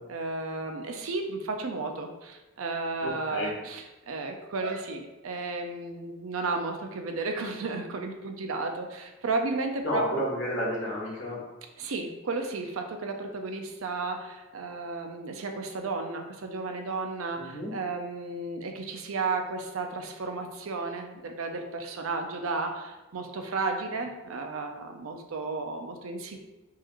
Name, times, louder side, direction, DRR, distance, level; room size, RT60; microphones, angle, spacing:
voice 1, 0.1-10.1 11.8-26.4, right 3 dB, 90° right, 4 dB, 0.5 m, -33 dB
voice 2, 3.0-3.5 9.8-11.4 17.4-17.7, equal, 65° left, -6 dB, 1.4 m, -31 dB
4.8 x 3.0 x 2.5 m, 1.1 s
head